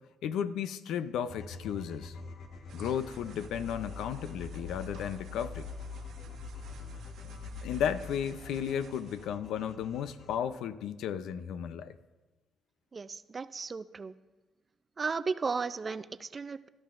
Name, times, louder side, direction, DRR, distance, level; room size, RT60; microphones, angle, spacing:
voice 1, 0.2-2.2 2.7-5.7 7.6-12.0, left 8 dB, 85° left, 12 dB, 0.5 m, -34 dB
sound 1, 1.3-10.4, left 4 dB, 65° left, 1.2 m, -44 dB
sound 2, 2.7-9.3, right 6 dB, 85° right, 1.3 m, -54 dB
voice 2, 12.9-14.1 15.0-16.7, right 4 dB, 35° right, 13 dB, 0.5 m, -35 dB
17.5 x 12.5 x 2.5 m, 1.2 s
cardioid pair, 90°, 0 cm